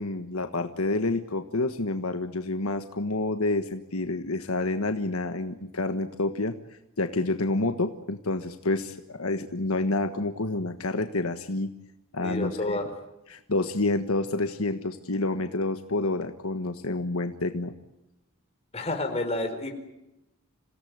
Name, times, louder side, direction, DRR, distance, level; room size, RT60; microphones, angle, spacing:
voice 1, 0.0-6.5 7.0-11.7 12.1-12.8 13.3-17.7, left 2 dB, 70° left, 7 dB, 1.5 m, -28 dB
voice 2, 12.2-12.9 18.7-19.8, left 2 dB, 30° left, 4 dB, 4.7 m, -30 dB
28.0 x 17.5 x 9.5 m, 0.92 s
head